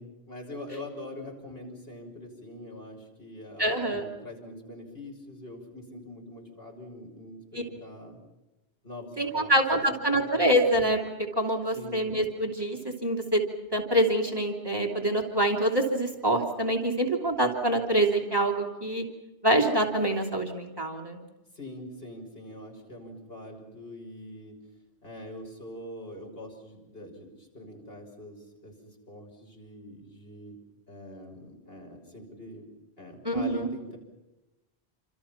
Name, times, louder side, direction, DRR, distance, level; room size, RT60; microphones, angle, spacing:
voice 1, 0.0-8.2 8.8-9.5 9.9-10.5 11.7-12.0 21.5-24.5 25.0-30.6 30.9-32.6 33.0-34.0, left 1 dB, 65° left, 1 dB, 6.6 m, -44 dB
voice 2, 3.6-4.1 9.2-11.0 11.4-13.4 13.7-19.0 19.4-21.2 33.2-33.7, right 1 dB, 20° right, 0 dB, 3.0 m, -25 dB
28.0 x 26.5 x 5.9 m, 1.0 s
omnidirectional pair, 1.1 m